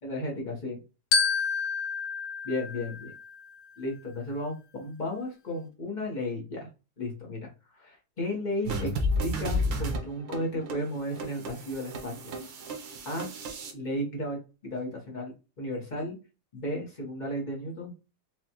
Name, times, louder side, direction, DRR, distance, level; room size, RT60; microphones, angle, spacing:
voice 1, 0.0-0.8 2.4-3.1 3.8-6.7 7.0-8.9 9.2-12.3 13.0-13.3 13.7-16.1 16.5-17.9, left 1 dB, 35° left, -1 dB, 0.8 m, -34 dB
Glockenspiel, 1.1-3.6, left 5 dB, 70° left, 1.3 m, -29 dB
sound 1, 8.7-13.7, left 1 dB, 85° right, 1.6 m, -32 dB
4.7 x 2.3 x 2.9 m, 0.31 s
omnidirectional pair, 2.0 m